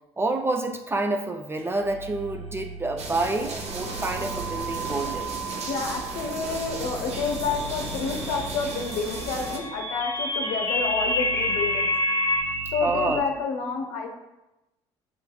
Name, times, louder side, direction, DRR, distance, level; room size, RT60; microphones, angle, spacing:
voice 1, 0.2-5.3 12.8-13.2, right 2 dB, 15° right, 5 dB, 0.3 m, -28 dB
sound 1, 1.5-13.2, right 4 dB, 85° right, 0.5 m, -37 dB
sound 2, 3.0-9.6, right 3 dB, 45° right, 0.7 m, -35 dB
voice 2, 5.7-11.9 12.7-14.1, left 4 dB, 55° left, 2 dB, 0.7 m, -29 dB
sound 3, 9.3-12.4, left 2 dB, 20° left, 0.8 m, -26 dB
5.7 x 2.7 x 2.3 m, 0.97 s
figure-of-eight pair, 50°, 15 cm